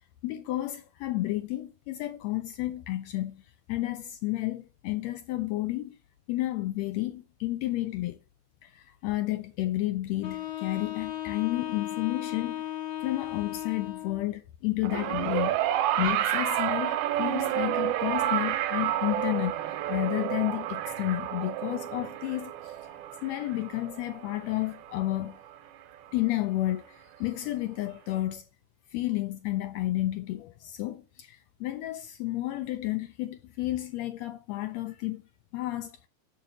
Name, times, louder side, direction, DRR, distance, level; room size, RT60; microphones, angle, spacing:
voice 1, 0.2-3.4 3.7-6.0 6.3-8.2 8.6-12.6 13.0-15.6 16.0-22.8 23.2-25.4 26.1-28.5 28.9-35.2 35.5-36.1, left 16 dB, 80° left, 1.6 m, -31 dB
Wind instrument woodwind instrument, 10.2-14.3, left 13 dB, 60° left, 1.8 m, -36 dB
sound 1, 14.8-25.3 26.3-26.4, right 12 dB, 85° right, 2.1 m, -30 dB
6.7 x 6.3 x 3.9 m
omnidirectional pair, 3.4 m